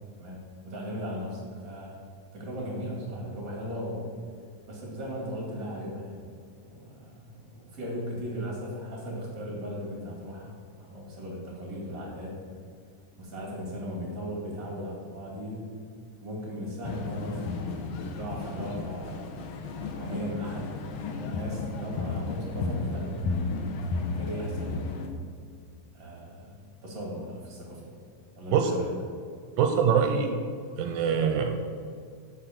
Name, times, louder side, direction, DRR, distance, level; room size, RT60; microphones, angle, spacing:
voice 1, 0.2-2.0 2.3-4.1 4.7-6.3 6.6-12.4 13.2-15.6 16.2-19.4 19.9-23.2 24.0-25.0 25.9-27.9 28.3-28.9, equal, 25° right, -2 dB, 2.5 m, -37 dB
sound 1, 16.8-25.1, left 3 dB, 75° left, 1.6 m, -33 dB
voice 2, 29.6-30.3 30.8-31.7, right 7 dB, 85° right, 5 dB, 2.2 m, -24 dB
8.2 x 5.7 x 7.4 m, 2.2 s
omnidirectional pair, 4.1 m